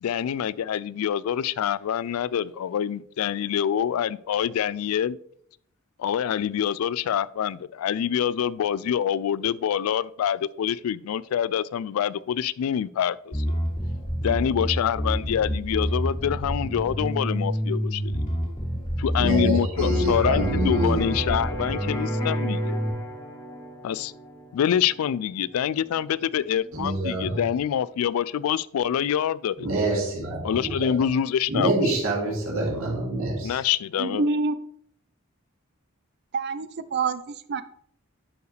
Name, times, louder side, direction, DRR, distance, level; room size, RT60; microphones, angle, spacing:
voice 1, 0.0-5.2 6.0-13.4 14.2-18.2 19.0-22.8 23.8-24.1 24.5-29.7 30.4-31.7 33.4-34.3, left 9 dB, 90° left, 19 dB, 0.3 m, -26 dB
Bass guitar, 13.3-22.9, equal, 35° left, 2.4 m, -28 dB
voice 2, 19.1-21.0 26.7-27.4 29.6-30.8 31.5-33.6, right 2 dB, 75° right, -4 dB, 2.5 m, -26 dB
Electric guitar, 19.7-27.5, equal, 20° left, 1.1 m, -38 dB
voice 3, 34.0-34.6 36.3-37.6, right 4 dB, 50° right, 13 dB, 0.5 m, -27 dB
11.5 x 4.7 x 3.3 m, 0.67 s
head